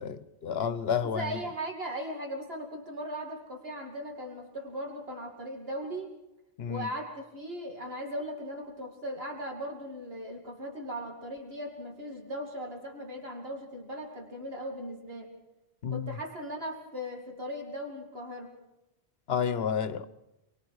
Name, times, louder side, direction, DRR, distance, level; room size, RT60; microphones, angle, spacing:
voice 1, 0.0-1.3 6.6-6.9 15.8-16.1 19.3-20.1, left 7 dB, 70° left, 1.2 m, -30 dB
voice 2, 1.0-6.1 6.7-15.3 15.9-18.5, equal, 65° right, 2.8 m, -38 dB
28.0 x 24.0 x 4.8 m
omnidirectional pair, 1.1 m